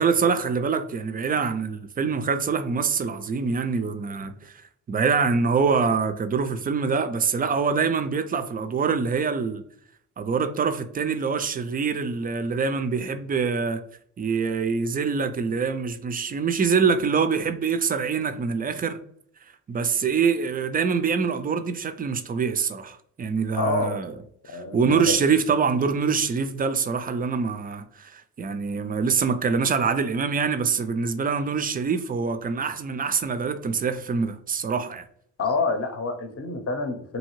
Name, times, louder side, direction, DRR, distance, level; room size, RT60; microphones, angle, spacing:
voice 1, 0.0-4.5 4.9-9.6 10.2-13.8 14.2-19.0 19.7-24.2 24.5-35.1, right 5 dB, 25° right, 0.3 m, -25 dB
voice 2, 23.5-24.0 24.5-25.1 35.4-37.2, left 3 dB, 35° left, 0.7 m, -27 dB
2.7 x 2.7 x 3.0 m
hypercardioid pair, 50°, 39 cm